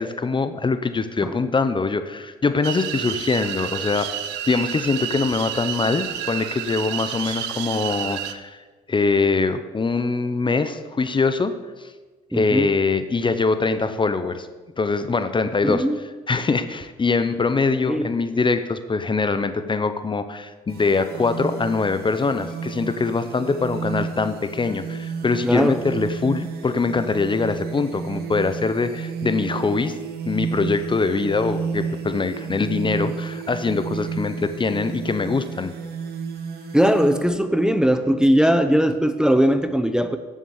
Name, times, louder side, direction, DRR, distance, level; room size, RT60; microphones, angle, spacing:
voice 1, 0.0-8.6 8.9-11.5 11.8-11.9 12.3-14.5 14.8-15.8 16.3-29.9 30.3-35.7, left 4 dB, 30° left, 11 dB, 0.9 m, -23 dB
sound 1, 2.6-8.3, right 11 dB, 85° right, 0.7 m, -30 dB
voice 2, 12.3-12.7 15.6-16.0 17.9-18.1 25.4-25.8 36.7-40.2, equal, 5° right, 9 dB, 0.8 m, -19 dB
sound 2, 20.7-37.2, right 6 dB, 65° right, 2.0 m, -32 dB
10.5 x 7.3 x 7.2 m, 1.3 s
supercardioid pair, 75°, 17 cm